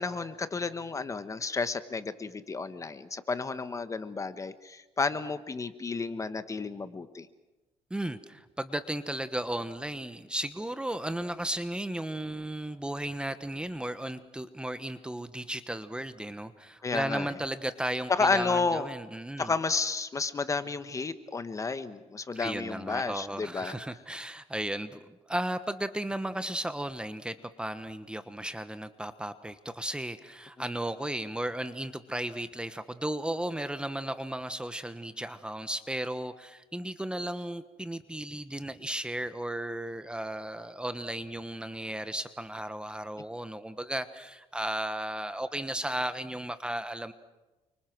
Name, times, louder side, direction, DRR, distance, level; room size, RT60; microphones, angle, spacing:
voice 1, 0.0-7.3 16.8-17.3 18.1-18.9 19.4-23.7, left 4 dB, 25° left, 11 dB, 1.4 m, -31 dB
voice 2, 7.9-19.5 22.3-47.1, right 1 dB, 5° right, 11 dB, 1.2 m, -35 dB
29.0 x 25.0 x 6.2 m, 1.1 s
cardioid pair, 120°, 13 cm